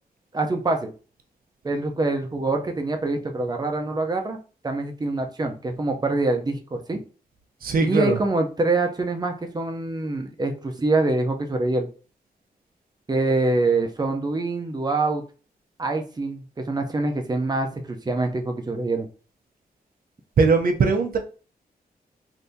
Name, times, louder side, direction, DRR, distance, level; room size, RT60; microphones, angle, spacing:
voice 1, 0.3-0.9 1.6-4.4 4.6-7.0 7.8-11.9 13.1-15.2 15.8-19.1, right 2 dB, 25° right, 4 dB, 0.6 m, -25 dB
voice 2, 7.6-8.2 20.4-21.2, right 4 dB, 70° right, 5 dB, 0.7 m, -20 dB
3.4 x 2.7 x 2.7 m, 0.36 s
wide cardioid pair, 95°, 16 cm